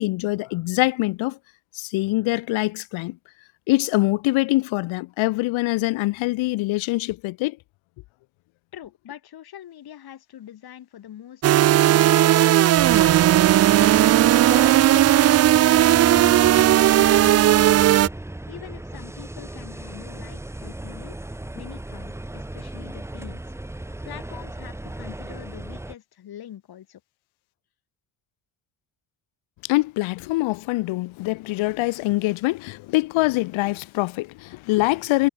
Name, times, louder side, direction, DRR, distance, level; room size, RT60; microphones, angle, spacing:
voice 1, 0.0-1.4 1.7-3.2 3.7-7.6 29.6-35.3, left 20 dB, 85° left, 2.5 m, -24 dB
voice 2, 8.7-11.4 11.9-12.6 12.9-16.7 16.9-17.9 18.5-21.2 21.5-23.5 24.0-27.0, left 11 dB, 55° left, 7.5 m, -43 dB
sound 1, 11.4-18.1, right 13 dB, 35° right, 0.4 m, -16 dB
sound 2, 12.8-26.0, right 1 dB, 5° right, 1.8 m, -36 dB
cardioid pair, 120°, 46 cm